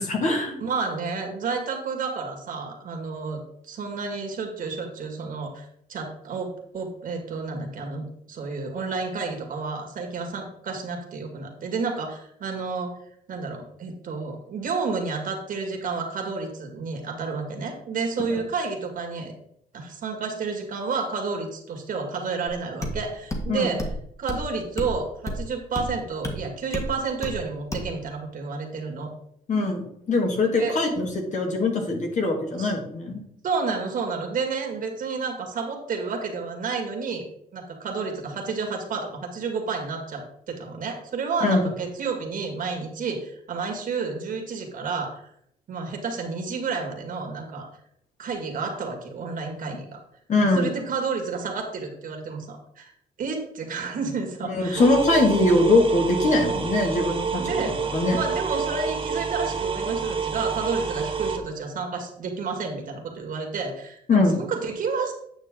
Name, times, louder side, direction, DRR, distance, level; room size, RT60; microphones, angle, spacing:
voice 1, 0.0-0.6 18.3-18.4 23.5-23.7 29.5-33.2 41.4-41.6 50.3-50.7 54.4-58.2 64.1-64.4, left 2 dB, 50° left, 2 dB, 2.2 m, -22 dB
voice 2, 0.6-12.9 13.3-19.3 19.7-23.9 24.2-29.1 30.4-30.8 32.6-32.7 33.4-45.3 45.7-47.7 48.2-50.0 50.5-52.9 53.2-54.8 57.3-57.8 58.0-65.1, right 4 dB, 55° right, 2 dB, 2.2 m, -30 dB
sound 1, 22.5-22.6 22.8-23.0 23.3-23.5 23.8-24.0 24.3-24.4 24.8-24.9 25.3-25.4 25.8-25.9 26.2-26.4 26.7-26.9 27.2-27.4 27.7-27.9, left 1 dB, 20° left, 1.7 m, -30 dB
sound 2, 54.8-61.4, right 6 dB, 35° right, 1.2 m, -28 dB
9.3 x 6.2 x 3.8 m, 0.71 s
cardioid pair, 110°, 17 cm